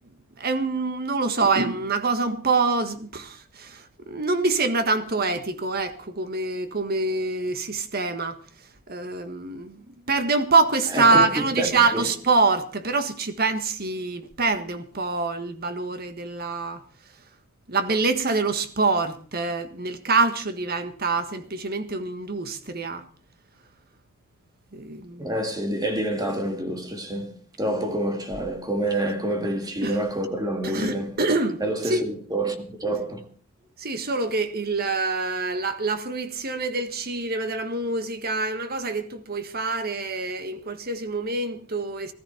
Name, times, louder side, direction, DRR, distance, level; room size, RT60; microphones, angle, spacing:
voice 1, 0.4-8.4 8.9-9.8 10.1-16.8 17.7-23.0 24.7-25.3 29.8-30.0 30.6-31.6 31.9-32.0 33.8-42.1, right 3 dB, 50° right, 1.6 m, -25 dB
voice 2, 10.9-12.1 25.2-31.2 31.6-33.3, right 1 dB, 20° right, 2.2 m, -28 dB
19.0 x 13.5 x 4.4 m
head